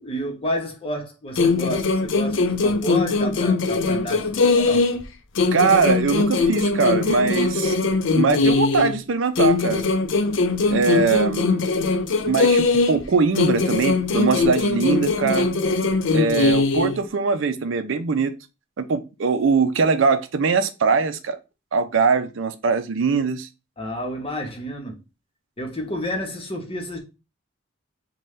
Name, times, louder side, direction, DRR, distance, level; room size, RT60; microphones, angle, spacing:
voice 1, 0.0-4.9 23.8-25.0 25.6-27.0, equal, 25° left, 0.9 m, -30 dB
sound 1, 1.4-5.1 5.4-9.0 9.4-13.1 13.4-17.0, left 3 dB, 65° left, 0.5 m, -21 dB
voice 2, 5.5-7.8 8.2-9.8 10.7-11.6 12.3-15.5 16.1-18.3 18.8-21.4 21.7-23.5, right 5 dB, 70° right, 0.5 m, -21 dB
5.4 x 2.2 x 3.2 m
head